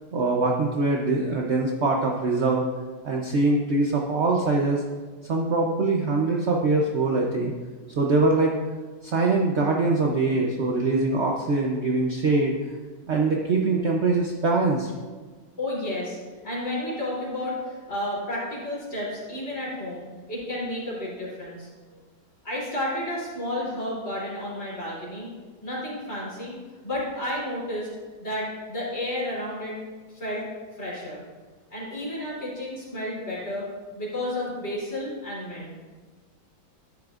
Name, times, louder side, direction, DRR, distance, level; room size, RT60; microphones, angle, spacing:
voice 1, 0.1-2.6 3.0-4.8 5.3-7.5 8.0-8.6 9.0-12.5 13.1-14.9 17.6-17.7, right 3 dB, 70° right, 0 dB, 0.6 m, -23 dB
voice 2, 15.6-16.2 16.4-21.7 22.4-25.3 25.6-26.5 26.8-27.9 28.2-29.7 30.1-30.4 30.7-31.2 31.7-33.7 33.9-35.7, left 1 dB, 35° left, -6 dB, 3.4 m, -31 dB
12.0 x 9.4 x 2.5 m, 1.4 s
omnidirectional pair, 2.1 m